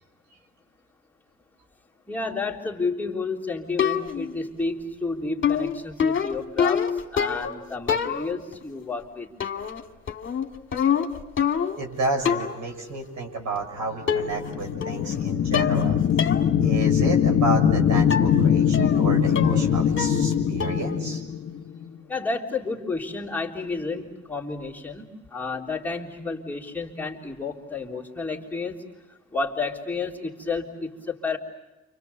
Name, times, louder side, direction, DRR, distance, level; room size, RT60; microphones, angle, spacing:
voice 1, 2.1-9.3 22.1-28.9 29.3-31.4, left 4 dB, 5° left, -4 dB, 3.5 m, -31 dB
sound 1, 3.8-4.3 5.4-7.6 7.9-8.5 9.4-9.8 10.1-11.9 12.3-12.6 13.6-13.7 14.1-14.5 14.8-15.2 15.5-15.9 16.2-16.4 16.8-16.9 18.1-18.3 18.7-19.0 19.4-19.7 20.0-20.3 20.6-20.9, left 7 dB, 40° left, 2.2 m, -26 dB
voice 2, 11.8-16.3 16.6-21.2, right 2 dB, 70° right, 3 dB, 6.9 m, -31 dB
sound 2, 14.2-21.9, left 8 dB, 60° left, 1.1 m, -22 dB
29.0 x 27.0 x 6.9 m, 1.1 s
cardioid pair, 90°, 30 cm